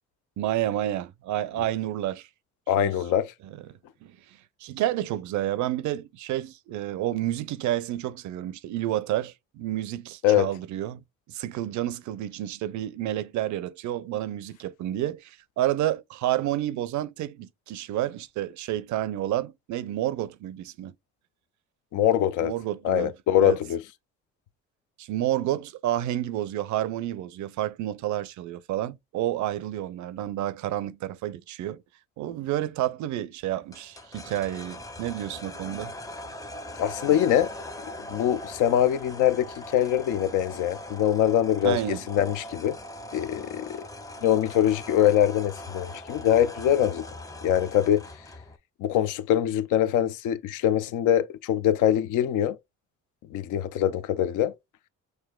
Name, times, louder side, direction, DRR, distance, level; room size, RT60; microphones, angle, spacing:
voice 1, 0.4-2.3 2.8-2.9 3.4-3.6 4.0-11.0 11.3-20.9 22.4-23.1 23.4-23.6 25.0-31.8 32.2-35.9 41.6-42.0, right 13 dB, 70° right, 0.5 m, -30 dB
voice 2, 2.7-3.3 10.2-10.5 21.9-22.5 22.8-23.8 36.8-37.5 38.1-42.8 43.1-43.9 44.2-47.1 47.4-48.0 48.8-52.6 53.3-54.5, left 10 dB, 80° left, 0.5 m, -23 dB
sound 1, 33.7-48.6, left 1 dB, 10° left, 0.5 m, -41 dB
6.1 x 2.6 x 2.2 m
cardioid pair, 90°, 30 cm